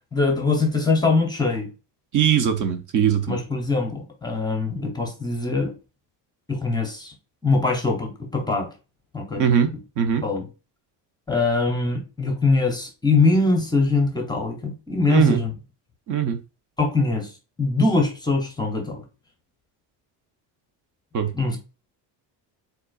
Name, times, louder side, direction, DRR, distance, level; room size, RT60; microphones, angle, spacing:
voice 1, 0.1-1.7 3.3-5.7 6.5-7.1 7.4-8.7 9.1-9.4 10.2-10.4 11.3-15.5 16.8-17.3 17.6-19.0 21.3-21.6, left 3 dB, 10° left, 0.6 m, -22 dB
voice 2, 2.1-3.4 9.4-10.3 15.1-15.4 16.1-16.4 21.1-21.3, right 8 dB, 45° right, 0.6 m, -21 dB
5.2 x 3.9 x 2.3 m
cardioid pair, 180°, 43 cm